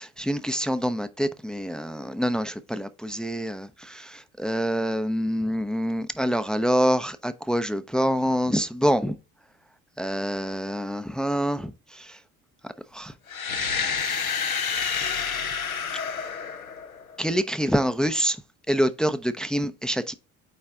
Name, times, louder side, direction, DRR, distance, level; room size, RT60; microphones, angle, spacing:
voice 1, 0.0-9.1 10.0-11.7 12.9-13.1 13.5-14.3 17.2-18.4 18.7-20.1, equal, ahead, 0.6 m, -26 dB
sound 1, 13.3-17.2, left 6 dB, 90° left, 0.8 m, -29 dB
9.1 x 3.2 x 3.7 m
figure-of-eight pair, 60°, 41 cm